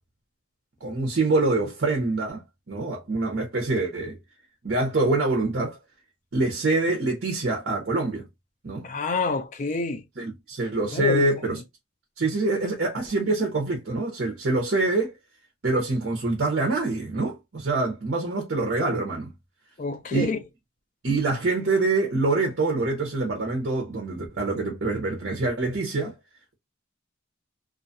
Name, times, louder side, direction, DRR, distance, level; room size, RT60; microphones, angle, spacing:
voice 1, 0.8-4.2 4.6-5.8 6.3-8.2 8.6-8.9 10.2-11.6 12.2-15.1 15.6-19.3 20.1-20.3 21.0-26.1, right 2 dB, 55° right, 0.7 m, -25 dB
voice 2, 8.8-10.0 10.9-11.3 11.5-11.6 19.8-20.4, left 3 dB, 35° left, 0.4 m, -28 dB
2.5 x 2.3 x 2.6 m
head